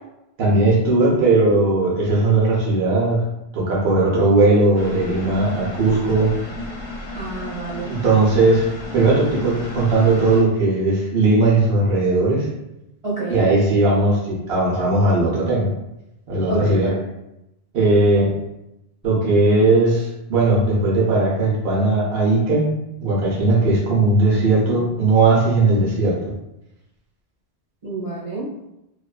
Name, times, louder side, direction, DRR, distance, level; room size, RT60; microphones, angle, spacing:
voice 1, 0.4-3.2 3.5-6.3 7.9-8.7 8.9-12.5 13.3-15.7 16.3-16.9 17.7-18.3 19.0-22.7 23.0-26.2, right 2 dB, 65° right, -4 dB, 0.9 m, -18 dB
sound 1, 4.7-10.4, left 2 dB, 80° left, 0.9 m, -34 dB
voice 2, 7.1-7.9 13.0-13.4 16.5-17.0 27.8-28.5, right 3 dB, 35° right, -9 dB, 0.7 m, -28 dB
2.5 x 2.3 x 2.3 m, 0.88 s
omnidirectional pair, 1.1 m